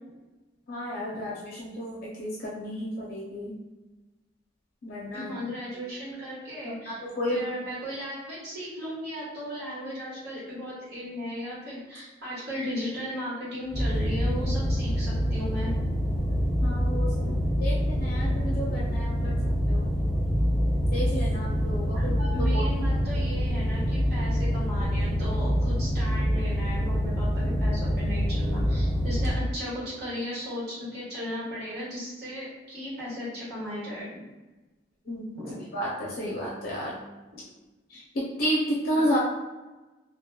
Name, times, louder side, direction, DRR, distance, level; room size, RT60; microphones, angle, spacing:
voice 1, 0.7-3.6 4.8-5.3 6.6-7.4 16.6-17.2 17.6-19.9 20.9-22.6 35.1-35.3 35.7-37.0 37.9-39.2, equal, 55° left, -5 dB, 0.5 m, -32 dB
voice 2, 5.1-7.0 7.3-15.7 17.2-17.4 19.1-19.2 21.9-34.2 35.3-35.6 38.9-39.2, equal, 60° right, -8 dB, 1.3 m, -36 dB
sound 1, 13.7-29.3, equal, ahead, 0.5 m, -26 dB
2.9 x 2.3 x 2.2 m, 1.1 s
head